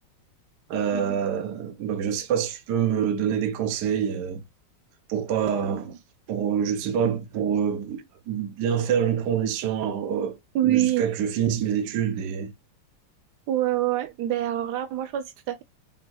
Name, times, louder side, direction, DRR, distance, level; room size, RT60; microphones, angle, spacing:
voice 1, 0.7-4.4 5.1-6.0 6.3-12.5, right 8 dB, 65° right, 1.2 m, -26 dB
voice 2, 10.5-11.1 13.5-15.6, right 13 dB, 80° right, 0.9 m, -25 dB
7.3 x 2.8 x 2.3 m
omnidirectional pair, 2.3 m